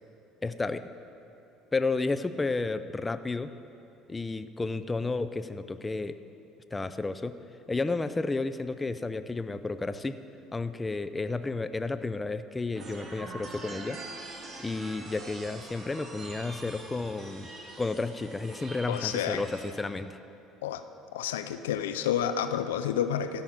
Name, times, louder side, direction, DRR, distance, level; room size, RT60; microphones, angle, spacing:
voice 1, 0.4-0.9 1.7-3.5 4.1-6.2 6.7-7.4 7.7-10.2 10.5-14.0 14.6-17.5 17.8-20.2, left 3 dB, 20° left, 11 dB, 0.5 m, -32 dB
sound 1, 12.7-19.7, right 2 dB, 40° right, 1.8 m, -44 dB
voice 2, 18.9-19.4 20.6-20.8 21.1-23.4, left 9 dB, 85° left, 10 dB, 0.4 m, -30 dB
13.5 x 5.6 x 8.8 m, 2.8 s
hypercardioid pair, 70°, 0 cm